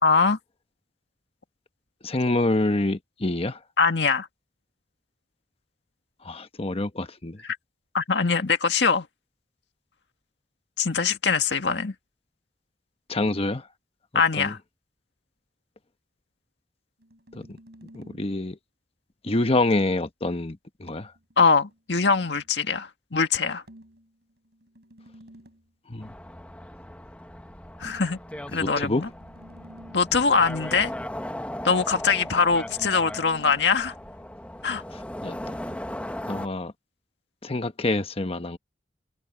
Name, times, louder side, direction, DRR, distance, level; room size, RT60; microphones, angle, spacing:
voice 1, 0.0-0.4 3.8-4.3 7.9-9.1 10.8-11.9 14.1-14.6 21.4-23.6 27.8-28.2 28.5-29.1 29.9-30.9 31.6-33.9 34.6-34.8, left 5 dB, 75° left, 1.9 m, -22 dB
voice 2, 2.0-3.6 6.2-7.4 13.1-13.7 14.4-14.5 17.3-17.6 17.9-18.6 19.2-21.1 25.9-26.1 28.5-29.0 34.9-35.8 36.3-36.7 37.4-38.6, left 2 dB, 35° left, 1.2 m, -27 dB
sound 1, 17.0-18.4 20.9-22.6 23.7-25.7 27.8-30.2 32.2-33.7, equal, 65° right, 5.5 m, -52 dB
sound 2, 26.0-36.5, left 1 dB, 10° left, 1.3 m, -37 dB
head